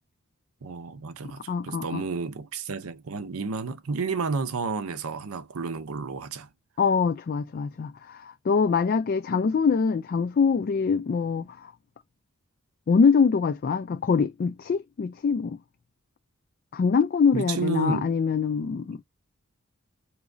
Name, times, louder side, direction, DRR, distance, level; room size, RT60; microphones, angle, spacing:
voice 1, 0.6-6.5 17.3-18.1, right 4 dB, 85° right, 0.7 m, -31 dB
voice 2, 1.5-2.0 6.8-11.7 12.9-15.6 16.7-19.0, left 5 dB, 45° left, 0.3 m, -24 dB
4.6 x 3.0 x 2.5 m
head